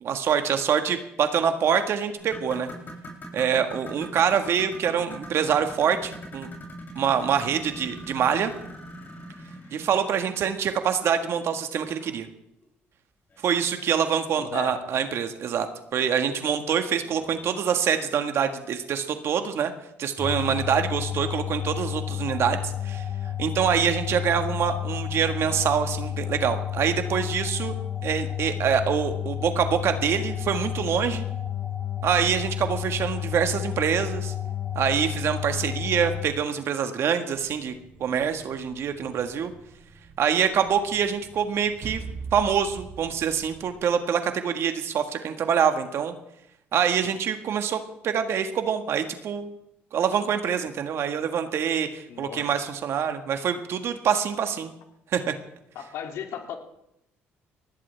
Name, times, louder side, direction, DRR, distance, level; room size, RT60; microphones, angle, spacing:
voice 1, 0.0-2.7 3.3-6.5 6.9-8.5 9.7-12.3 13.4-15.7 15.9-19.7 20.0-23.0 23.4-27.7 28.0-31.2 32.0-34.3 34.7-37.7 38.0-39.5 40.2-42.0 42.3-46.1 46.7-49.5 49.9-54.7 55.1-55.3, right 7 dB, 60° right, 7 dB, 1.6 m, -25 dB
sound 1, 2.2-10.6 12.0-12.1 12.6-12.7 13.3-13.4, equal, 40° left, 7.1 m, -42 dB
voice 2, 14.4-14.8 17.2-17.3 52.1-52.4 55.7-56.6, left 8 dB, 75° left, 3 dB, 2.6 m, -36 dB
sound 2, 20.2-36.3, left 10 dB, 20° left, 5.8 m, -31 dB
sound 3, 37.3-43.8, right 4 dB, 45° right, 3.7 m, -43 dB
20.0 x 16.0 x 3.4 m, 0.81 s
supercardioid pair, 75°, 5 cm